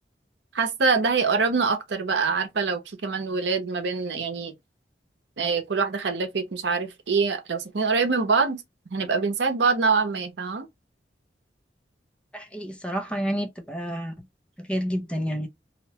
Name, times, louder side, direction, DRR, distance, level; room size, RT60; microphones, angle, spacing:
voice 1, 0.5-4.5 5.4-8.6 8.9-10.7, right 4 dB, 85° right, 0.6 m, -24 dB
voice 2, 12.3-14.1 14.7-15.5, equal, 5° left, 0.4 m, -29 dB
2.8 x 2.1 x 2.7 m
head